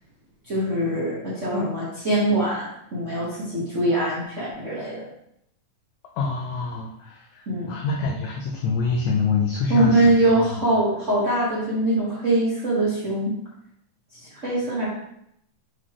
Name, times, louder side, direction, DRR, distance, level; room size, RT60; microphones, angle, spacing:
voice 1, 0.5-5.0 7.5-7.7 9.7-13.3 14.3-14.9, right 1 dB, 75° right, -9 dB, 0.6 m, -23 dB
voice 2, 6.2-10.2, left 4 dB, 85° left, 0 dB, 1.6 m, -26 dB
7.9 x 4.0 x 3.1 m, 0.75 s
omnidirectional pair, 4.1 m